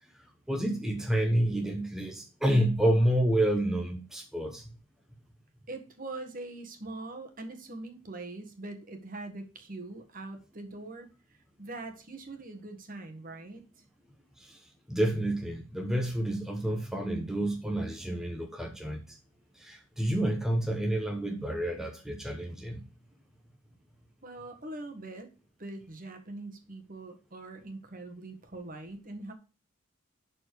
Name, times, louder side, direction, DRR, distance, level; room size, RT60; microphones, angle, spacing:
voice 1, 0.5-4.6 14.4-14.6 14.9-19.0 19.6-22.8, right 1 dB, ahead, 1.0 m, -29 dB
voice 2, 5.7-13.9 24.2-25.3 25.6-29.3, right 2 dB, 45° right, 1.7 m, -43 dB
11.5 x 4.4 x 4.8 m
head